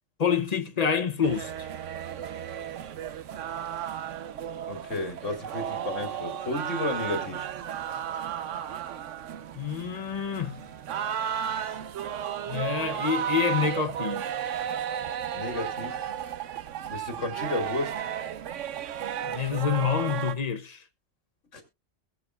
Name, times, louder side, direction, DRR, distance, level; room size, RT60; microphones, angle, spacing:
voice 1, 0.2-1.7 9.5-10.6 12.5-14.3 19.2-20.8, left 7 dB, 40° left, 0.8 m, -27 dB
sound 1, 1.2-20.3, right 9 dB, 85° right, 1.1 m, -34 dB
voice 2, 4.7-7.5 15.3-16.1 16.9-17.9 21.5-21.6, left 2 dB, 85° left, 2.7 m, -32 dB
21.0 x 7.3 x 2.3 m
omnidirectional pair, 1.2 m